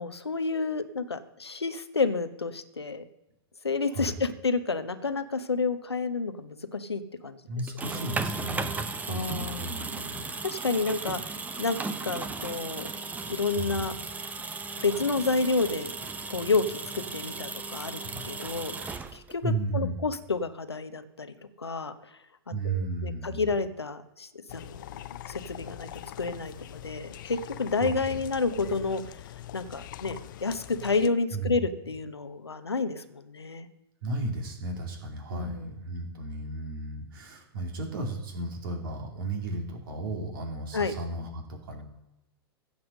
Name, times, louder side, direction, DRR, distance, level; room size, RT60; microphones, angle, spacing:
voice 1, 0.0-3.0 3.6-7.4 7.9-8.0 9.1-9.7 10.4-11.2 11.6-11.8 12.0-12.9 13.3-13.9 14.8-15.9 16.3-21.9 22.6-24.8 25.3-25.9 26.2-29.1 29.5-33.7 35.3-35.7 40.7-40.9, left 4 dB, 80° left, 10 dB, 1.0 m, -30 dB
voice 2, 3.9-4.2 7.5-10.2 13.5-13.9 18.0-18.2 19.4-20.0 22.5-23.5 27.8-28.2 28.5-28.7 31.3-31.6 34.0-41.8, right 2 dB, 60° right, 2 dB, 2.8 m, -34 dB
sound 1, 7.6-19.5, right 3 dB, 10° right, 0.8 m, -36 dB
sound 2, 24.5-31.1, left 13 dB, 50° left, 0.6 m, -43 dB
16.0 x 6.1 x 6.5 m, 0.91 s
figure-of-eight pair, 100°, 13 cm